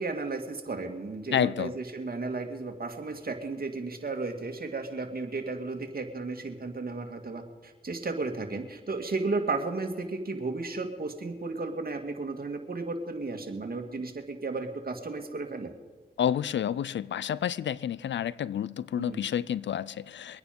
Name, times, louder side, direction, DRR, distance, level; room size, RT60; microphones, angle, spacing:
voice 1, 0.0-15.7 19.0-19.2, right 3 dB, 55° right, 2.3 m, -34 dB
voice 2, 1.3-1.7 16.2-20.4, left 9 dB, 80° left, 0.4 m, -29 dB
23.5 x 9.5 x 5.3 m
cardioid pair, 45°, 18 cm